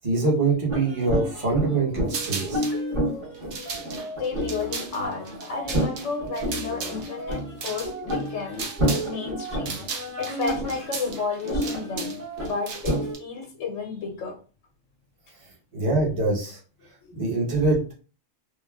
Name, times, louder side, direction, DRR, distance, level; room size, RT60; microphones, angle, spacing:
voice 1, 0.0-2.6 15.7-16.6 17.1-17.9, right 3 dB, 30° right, -4 dB, 0.9 m, -24 dB
sound 1, 0.7-13.1, right 1 dB, 45° right, 1.2 m, -30 dB
sound 2, 2.1-2.8 3.3-9.1 9.4-13.2, right 5 dB, 65° right, 0.9 m, -36 dB
voice 2, 4.2-8.7 9.0-9.8 10.2-14.3 17.0-17.1, left 5 dB, 70° left, 1 dB, 1.0 m, -32 dB
3.2 x 2.1 x 2.3 m, 0.37 s
omnidirectional pair, 1.4 m